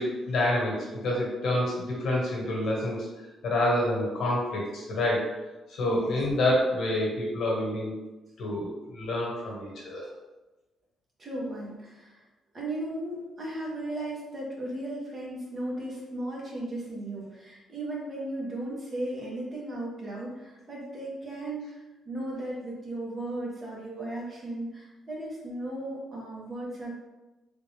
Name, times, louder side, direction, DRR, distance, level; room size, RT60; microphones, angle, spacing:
voice 1, 0.0-3.1 3.4-5.3 5.8-7.9 8.4-10.1, left 1 dB, 60° left, -3 dB, 1.3 m, -27 dB
voice 2, 5.9-6.2 11.2-12.2 12.5-26.9, right 1 dB, 35° right, -4 dB, 1.1 m, -36 dB
3.5 x 2.4 x 3.4 m, 1.1 s
cardioid pair, 110°, 0 cm